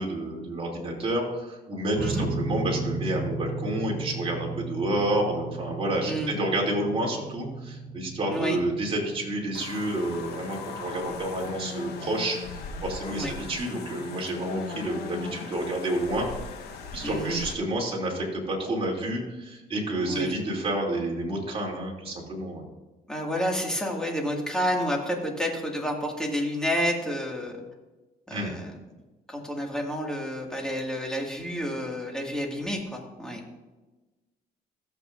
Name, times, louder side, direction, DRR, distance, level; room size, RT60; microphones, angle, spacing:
voice 1, 0.0-12.4 12.8-16.3 16.9-22.6 28.3-28.5, right 1 dB, 35° right, -1 dB, 3.0 m, -29 dB
sound 1, 1.9-14.5, right 2 dB, 65° right, 2.8 m, -37 dB
sound 2, 9.5-17.5, left 5 dB, 75° left, 1.3 m, -39 dB
voice 2, 17.0-17.4 20.1-20.4 23.1-27.6 28.3-28.6 29.3-33.4, equal, 5° left, -1 dB, 2.2 m, -29 dB
15.0 x 7.9 x 2.6 m, 1.1 s
cardioid pair, 110°, 17 cm